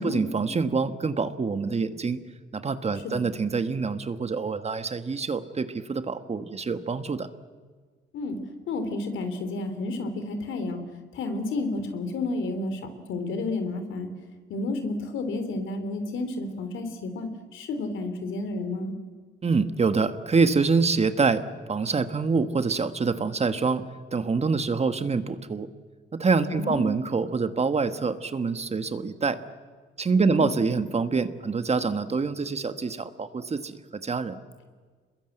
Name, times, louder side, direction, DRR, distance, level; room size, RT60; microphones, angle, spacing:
voice 1, 0.0-2.2 2.5-7.3 19.4-21.4 21.7-23.8 24.1-25.7 26.2-29.4 30.0-34.3, right 4 dB, 30° right, 11 dB, 1.4 m, -26 dB
voice 2, 8.7-10.8 11.1-14.1 14.5-19.0 26.5-26.9 30.1-30.5, left 2 dB, 80° left, 8 dB, 3.5 m, -31 dB
27.5 x 21.5 x 8.0 m, 1.5 s
cardioid pair, 90°, 20 cm